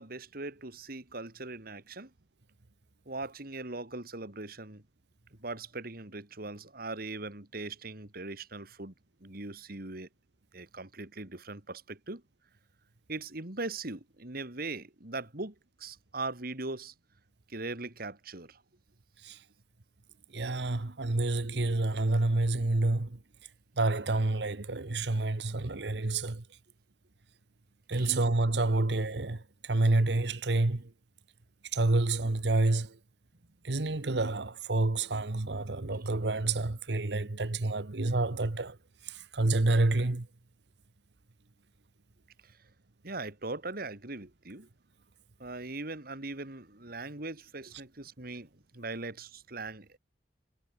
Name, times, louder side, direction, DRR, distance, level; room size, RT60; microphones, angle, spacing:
voice 1, 0.0-2.1 3.1-4.8 5.4-8.9 9.2-10.1 10.5-12.2 13.1-16.9 17.5-18.6 27.9-28.2 28.8-28.9 36.0-36.1 43.0-44.7 45.4-50.0, right 3 dB, 60° right, 2.9 m, -40 dB
voice 2, 20.3-23.2 23.8-26.4 27.9-30.9 31.7-33.0 33.6-38.8 39.0-40.3, right 2 dB, 75° right, 1.2 m, -28 dB
head